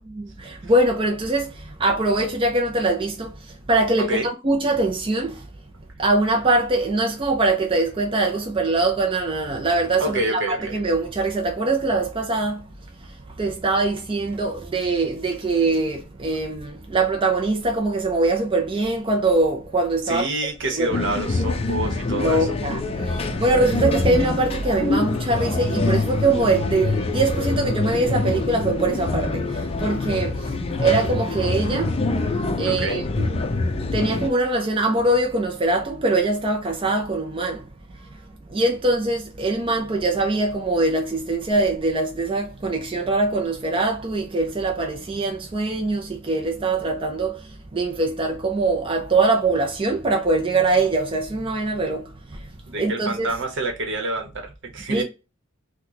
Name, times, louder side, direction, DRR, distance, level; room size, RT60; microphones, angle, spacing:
voice 1, 0.0-5.5 6.0-12.7 13.0-20.3 20.7-20.9 22.2-33.5 33.9-37.7 38.0-38.1 38.5-52.5 52.8-53.3 54.9-55.0, right 2 dB, 25° right, 0.5 m, -23 dB
voice 2, 4.0-4.3 10.0-10.8 20.0-22.6 32.7-33.0 52.7-55.0, right 2 dB, 65° right, 1.0 m, -27 dB
sound 1, 20.9-34.3, left 3 dB, 30° left, 0.5 m, -25 dB
2.9 x 2.2 x 3.8 m
head